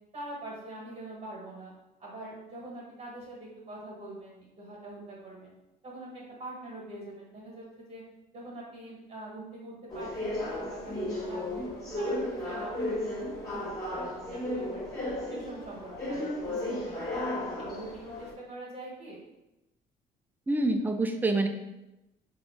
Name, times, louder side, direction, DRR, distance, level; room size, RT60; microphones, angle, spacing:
voice 1, 0.1-1.7 2.0-5.5 5.8-8.0 8.3-11.6 11.9-14.8 15.3-17.2 17.6-19.2, right 2 dB, 40° right, -4 dB, 1.4 m, -44 dB
sound 1, 9.9-18.3, left 1 dB, 20° left, 1.2 m, -34 dB
voice 2, 20.5-21.5, right 2 dB, 10° right, 6 dB, 0.3 m, -26 dB
3.6 x 2.5 x 3.5 m, 0.96 s
cardioid pair, 110°, 17 cm